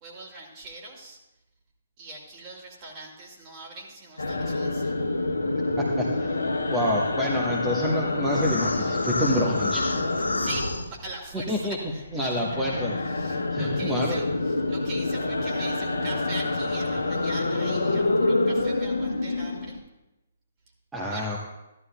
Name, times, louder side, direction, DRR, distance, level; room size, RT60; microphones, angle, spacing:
voice 1, 0.0-1.2 2.0-5.0 6.7-6.9 10.2-12.3 13.1-19.8 21.1-21.4, right 2 dB, 30° right, -1 dB, 2.4 m, -41 dB
sound 1, 4.2-11.5 11.8-19.8, left 2 dB, 80° left, 0.9 m, -27 dB
voice 2, 5.8-6.3 6.7-9.8 11.5-11.8 12.1-12.9 13.5-14.2 20.9-21.4, left 1 dB, 10° right, -4 dB, 1.1 m, -27 dB
14.0 x 12.0 x 2.2 m, 0.96 s
figure-of-eight pair, 130°, 0 cm